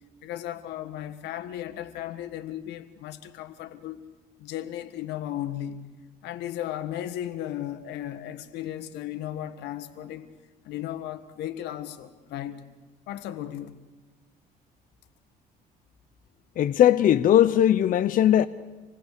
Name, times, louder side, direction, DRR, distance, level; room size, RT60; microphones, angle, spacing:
voice 1, 0.2-4.1 4.4-5.9 6.2-10.3 10.6-12.6 13.1-13.7, left 12 dB, 85° left, 1.5 m, -35 dB
voice 2, 16.6-18.5, left 11 dB, 55° left, 0.7 m, -19 dB
27.0 x 19.5 x 6.7 m
cardioid pair, 110°, 17 cm